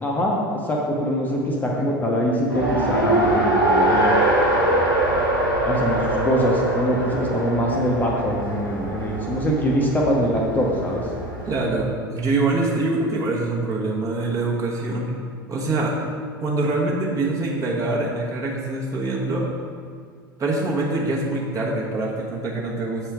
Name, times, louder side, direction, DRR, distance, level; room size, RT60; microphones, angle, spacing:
voice 1, 0.0-4.1 5.6-11.0, equal, 15° left, -2 dB, 0.8 m, -23 dB
Race car auto racing, 2.5-11.6, right 1 dB, 90° left, 1.5 m, -23 dB
voice 2, 11.4-15.2 15.5-15.9 16.4-19.5 20.4-23.1, right 2 dB, 30° right, -3 dB, 1.2 m, -24 dB
7.3 x 4.4 x 3.5 m, 2.1 s
figure-of-eight pair, 80°, 12 cm